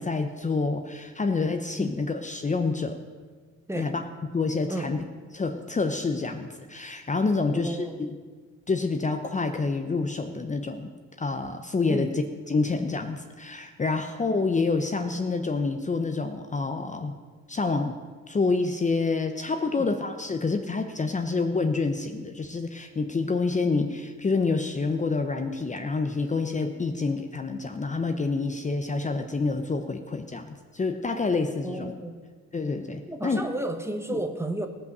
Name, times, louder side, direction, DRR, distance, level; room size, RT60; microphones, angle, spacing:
voice 1, 0.0-3.0 3.8-4.0 4.3-5.0 5.3-8.2 8.7-10.9 11.2-17.1 17.5-17.9 18.3-32.0 32.5-33.5 34.1-34.2, left 3 dB, 25° left, 6 dB, 0.8 m, -27 dB
voice 2, 7.4-8.0 11.9-12.1 19.8-19.9 31.6-32.1 33.1-34.7, right 1 dB, 10° right, 5 dB, 1.1 m, -32 dB
16.5 x 5.6 x 6.7 m, 1.5 s
cardioid pair, 90°, 30 cm